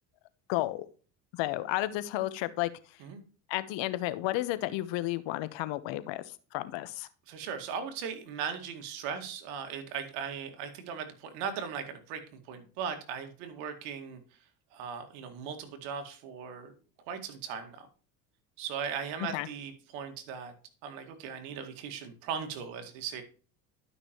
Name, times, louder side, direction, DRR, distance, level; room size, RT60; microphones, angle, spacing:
voice 1, 0.5-0.8 1.3-2.7 3.5-7.1 19.3-19.5, left 16 dB, 65° left, 14 dB, 1.1 m, -32 dB
voice 2, 7.3-12.2 12.5-14.2 14.7-16.7 17.1-17.9 18.6-20.5 20.8-23.2, right 7 dB, 75° right, 7 dB, 2.2 m, -38 dB
12.0 x 6.0 x 3.0 m, 0.39 s
hypercardioid pair, 75°, 49 cm